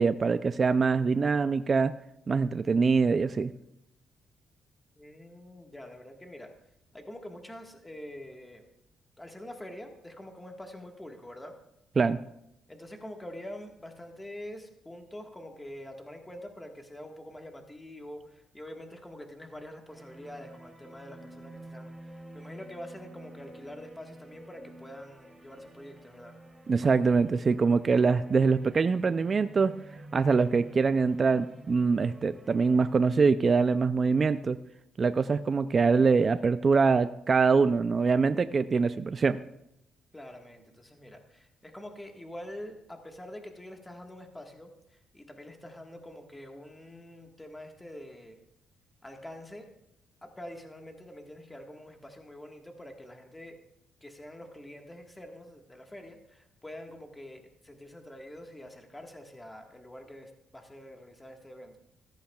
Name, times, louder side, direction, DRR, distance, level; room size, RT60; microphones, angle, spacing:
voice 1, 0.0-1.9 2.3-3.5 12.0-12.2 26.7-29.7 30.1-34.6 35.0-39.4, right 4 dB, 40° right, 11 dB, 0.4 m, -24 dB
voice 2, 5.0-6.5 6.9-8.6 9.2-11.5 12.7-26.4 40.1-48.4 49.0-49.7 50.2-53.6 54.0-61.8, left 1 dB, 10° left, 3 dB, 1.5 m, -45 dB
sound 1, 19.9-32.9, right 1 dB, 10° right, 2.7 m, -50 dB
14.0 x 14.0 x 2.3 m, 0.81 s
cardioid pair, 90°, 0 cm